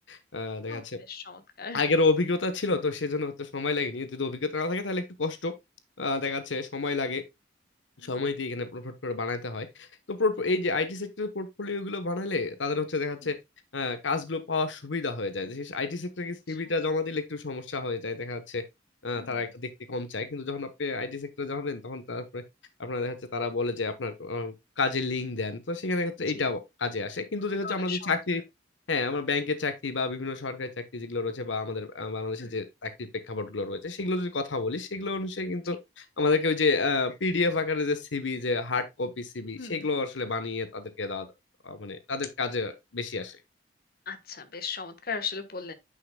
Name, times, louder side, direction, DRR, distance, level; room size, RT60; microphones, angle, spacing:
voice 1, 0.1-1.0 1.7-5.5 6.0-7.2 8.0-13.4 13.7-18.6 19.0-22.4 22.8-28.4 28.9-41.3 41.6-43.4, left 3 dB, 90° left, 1.1 m, -30 dB
voice 2, 0.7-1.8 8.0-8.1 13.2-13.3 16.5-16.6 19.1-19.4 26.3-26.4 27.6-28.2 32.4-32.6 39.6-39.9 44.1-45.7, left 5 dB, 55° left, 1.2 m, -38 dB
9.8 x 5.7 x 2.2 m
head